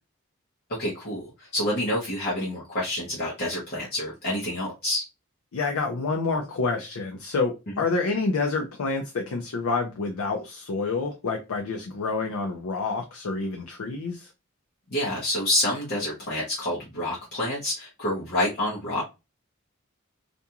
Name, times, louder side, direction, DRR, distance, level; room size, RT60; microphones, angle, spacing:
voice 1, 0.8-5.0 14.9-19.0, left 1 dB, 45° left, -6 dB, 0.8 m, -28 dB
voice 2, 5.5-14.3, left 4 dB, 80° left, 3 dB, 0.5 m, -28 dB
2.5 x 2.3 x 2.7 m, 0.26 s
head